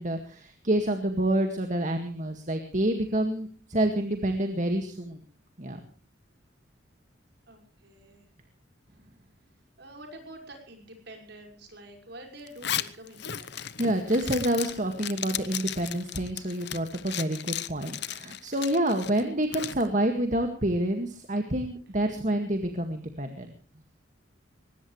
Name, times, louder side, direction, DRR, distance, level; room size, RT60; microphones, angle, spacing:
voice 1, 0.0-5.2 5.6-5.8 13.8-23.5, right 1 dB, 40° right, 5 dB, 2.0 m, -28 dB
voice 2, 7.5-8.3 9.8-13.7, right 1 dB, 55° right, 3 dB, 6.0 m, -47 dB
Zipper (clothing), 12.5-19.8, left 10 dB, 55° left, 1.0 m, -35 dB
21.5 x 20.0 x 3.3 m, 0.38 s
head